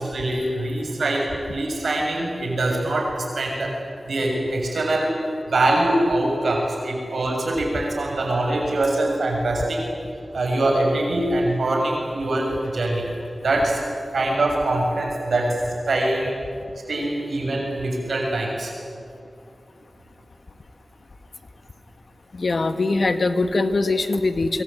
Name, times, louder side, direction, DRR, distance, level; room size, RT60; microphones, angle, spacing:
voice 1, 0.0-3.8 4.1-5.1 5.5-9.9 10.3-13.1 13.4-13.8 14.1-15.6 15.9-16.3 16.9-18.7, right 2 dB, 85° right, 0 dB, 6.9 m, -23 dB
voice 2, 22.3-24.6, left 3 dB, 65° left, 9 dB, 1.7 m, -22 dB
25.0 x 24.5 x 9.0 m, 2.5 s
cardioid pair, 40°, 0 cm